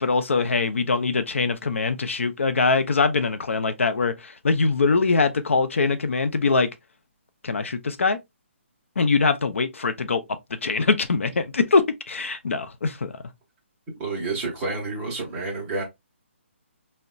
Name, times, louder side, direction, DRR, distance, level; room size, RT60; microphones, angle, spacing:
voice 1, 0.0-6.7 7.4-8.2 9.0-10.2 10.6-13.1, left 4 dB, 90° left, 0.5 m, -23 dB
voice 2, 14.0-15.8, right 3 dB, 10° right, 0.6 m, -29 dB
3.8 x 2.1 x 2.2 m
hypercardioid pair, 180°, 7 cm